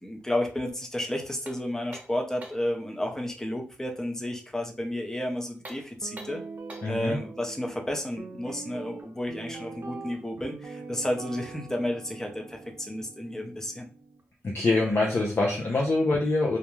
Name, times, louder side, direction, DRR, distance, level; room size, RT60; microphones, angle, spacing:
voice 1, 0.0-6.4 6.9-13.9, left 1 dB, 10° left, 3 dB, 0.6 m, -32 dB
sound 1, 1.4-2.7 5.5-7.0, right 1 dB, 30° right, 1.0 m, -46 dB
Guitar, 6.0-14.2, right 4 dB, 55° right, 0.5 m, -43 dB
voice 2, 6.8-7.2 14.4-16.6, left 2 dB, 50° left, -2 dB, 0.6 m, -25 dB
2.4 x 2.2 x 3.0 m, 0.37 s
cardioid pair, 65°, 5 cm